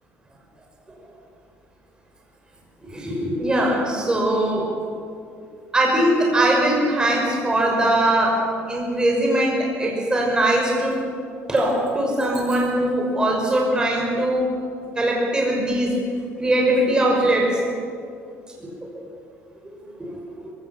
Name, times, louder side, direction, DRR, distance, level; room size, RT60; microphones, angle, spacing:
voice 1, 2.8-4.7 5.7-8.4 8.7-11.0 11.5-14.5 15.0-15.9 16.4-17.6 18.6-18.9 19.6-19.7 20.0-20.5, right 1 dB, 15° right, -1 dB, 5.7 m, -21 dB
21.5 x 17.0 x 7.6 m, 2.3 s
cardioid pair, 125°, 5 cm